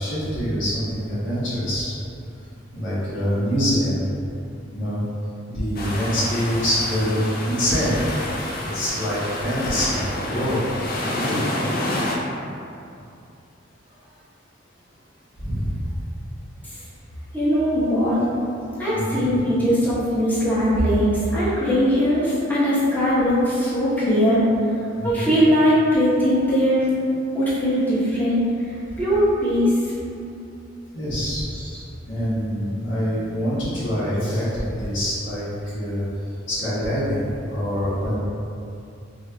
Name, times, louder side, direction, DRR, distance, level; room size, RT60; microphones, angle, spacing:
voice 1, 0.0-1.9 2.7-4.0 4.7-5.0 5.5-8.0 8.6-10.0 10.2-10.6 10.9-11.4 15.4-15.8 18.9-19.3 25.0-25.3 30.9-31.4 32.0-36.0 36.5-38.2, equal, 75° left, -11 dB, 1.2 m, -25 dB
sound 1, 5.8-12.2, left 1 dB, 50° left, 0.4 m, -28 dB
voice 2, 17.3-18.3 18.8-24.4 25.0-26.9 27.3-28.4 29.0-29.7 31.5-31.6, equal, 10° left, -11 dB, 0.9 m, -20 dB
5.2 x 2.4 x 2.2 m, 2.6 s
head